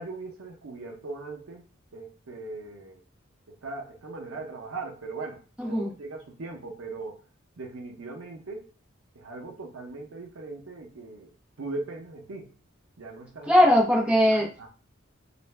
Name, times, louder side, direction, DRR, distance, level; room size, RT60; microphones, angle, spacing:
voice 1, 0.0-1.7 1.9-3.0 3.5-5.4 5.7-7.2 7.6-8.7 9.1-11.3 11.6-12.5 13.0-13.8 14.1-14.7, right 3 dB, 90° right, 2 dB, 0.6 m, -39 dB
voice 2, 13.5-14.5, equal, 5° right, -5 dB, 0.6 m, -20 dB
2.5 x 2.1 x 3.2 m, 0.36 s
head